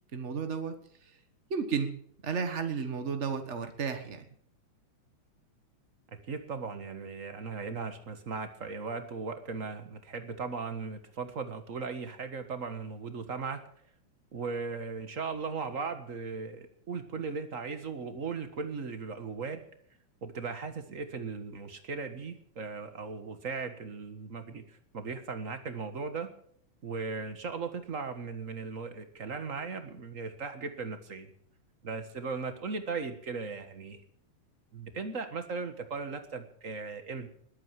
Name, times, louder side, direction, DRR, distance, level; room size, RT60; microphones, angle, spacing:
voice 1, 0.1-1.1 1.5-2.0 2.2-4.2, right 6 dB, 80° right, 7 dB, 0.6 m, -33 dB
voice 2, 6.3-13.6 14.3-19.6 20.2-26.3 26.8-31.3 31.8-34.0 34.7-37.3, right 4 dB, 40° right, 8 dB, 1.1 m, -37 dB
21.0 x 8.8 x 7.5 m, 0.63 s
omnidirectional pair, 3.6 m